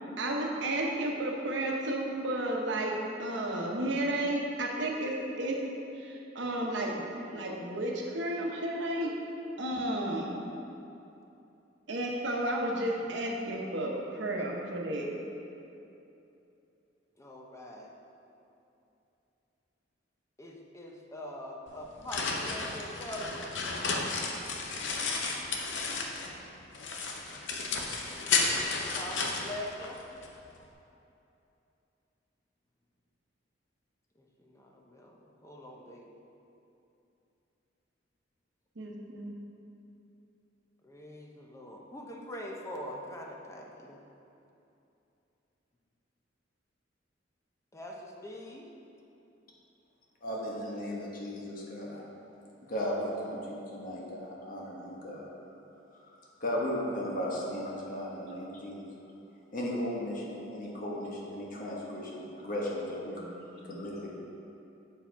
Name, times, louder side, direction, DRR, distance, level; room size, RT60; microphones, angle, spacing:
voice 1, 0.2-5.6 6.0-7.1 7.3-9.1 9.6-10.4 11.9-15.2 38.8-39.4 63.2-63.8, right 1 dB, 70° right, -1 dB, 0.9 m, -32 dB
voice 2, 17.2-17.9 20.4-23.5 28.7-30.0 34.2-36.1 40.8-44.0 47.7-48.7, left 1 dB, 15° left, -1 dB, 0.6 m, -43 dB
sound 1, 21.7-26.4 26.7-30.3, left 4 dB, 70° left, 0.7 m, -33 dB
voice 3, 50.2-52.0 52.6-55.3 55.9-56.0 56.4-58.9 59.5-63.2 63.6-64.1, equal, 50° left, -3 dB, 1.2 m, -36 dB
7.1 x 4.8 x 4.5 m, 2.8 s
head